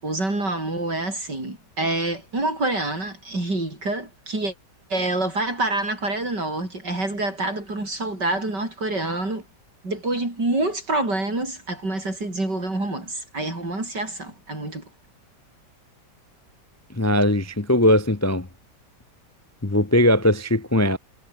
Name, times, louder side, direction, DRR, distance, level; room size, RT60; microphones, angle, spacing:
voice 1, 0.0-4.5 4.9-9.4 9.8-14.9, right 2 dB, 75° right, 8.4 m, -27 dB
voice 2, 17.0-18.5 19.6-21.0, left 1 dB, 15° left, 0.6 m, -19 dB
omnidirectional pair, 1.8 m